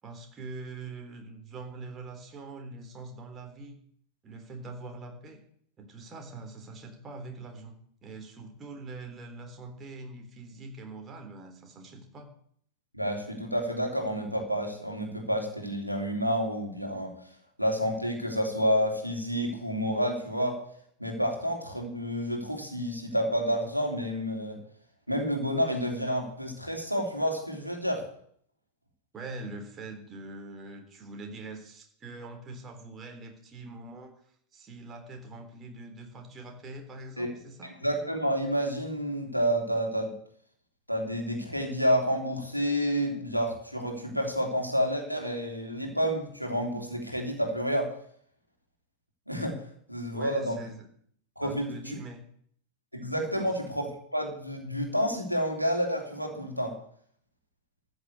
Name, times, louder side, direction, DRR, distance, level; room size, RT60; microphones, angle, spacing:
voice 1, 0.0-3.8 4.2-5.4 5.8-7.7 8.0-12.3 29.1-37.7 50.1-50.8 51.4-52.2 53.4-53.6, right 3 dB, 25° right, 3 dB, 3.7 m, -43 dB
voice 2, 12.9-17.1 17.6-20.6 21.0-24.6 25.1-28.0 37.2-37.3 37.8-40.1 40.9-47.9 49.3-49.6 49.9-50.6 51.4-51.9 52.9-53.9 54.1-56.8, equal, 90° right, 2 dB, 3.0 m, -29 dB
14.0 x 6.6 x 8.2 m, 0.63 s
figure-of-eight pair, 90°, 0 cm